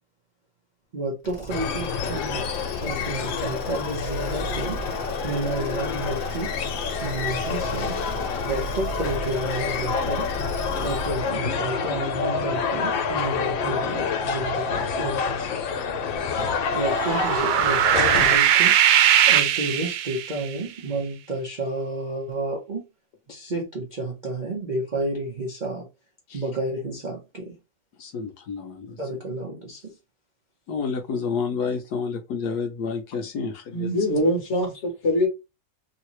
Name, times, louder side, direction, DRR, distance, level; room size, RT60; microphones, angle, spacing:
voice 1, 0.9-2.5 2.8-4.8 5.2-6.6 7.0-8.0 8.4-10.3 10.8-15.5 16.7-18.8 19.3-22.9 23.3-25.9 26.3-27.6 29.0-30.0, right 2 dB, 55° right, 0.5 m, -31 dB
sound 1, 1.2-11.4, right 1 dB, 25° left, 1.3 m, -35 dB
sound 2, 1.5-18.4, left 6 dB, 85° left, 1.4 m, -28 dB
sound 3, 16.7-20.5, right 10 dB, 85° right, 1.3 m, -20 dB
voice 2, 28.0-29.0 30.7-33.9, left 5 dB, 70° left, 1.1 m, -29 dB
voice 3, 33.7-35.3, left 1 dB, 45° left, 1.1 m, -23 dB
3.2 x 2.8 x 3.0 m
omnidirectional pair, 2.0 m